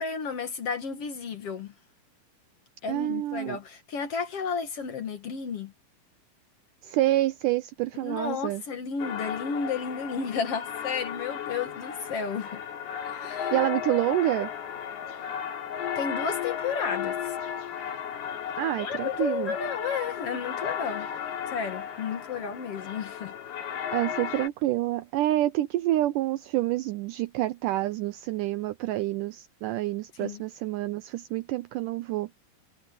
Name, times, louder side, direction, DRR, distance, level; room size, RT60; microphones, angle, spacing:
voice 1, 0.0-1.7 2.8-5.7 8.0-12.6 13.1-13.6 16.0-17.2 18.8-21.1 21.5-23.3 30.2-30.4, left 5 dB, 50° left, 1.9 m, -32 dB
voice 2, 2.9-3.6 6.8-8.6 13.5-14.5 18.6-19.5 23.9-32.3, right 15 dB, 85° right, 1.8 m, -28 dB
sound 1, 9.0-24.5, left 8 dB, 85° left, 4.7 m, -35 dB
omnidirectional pair, 4.4 m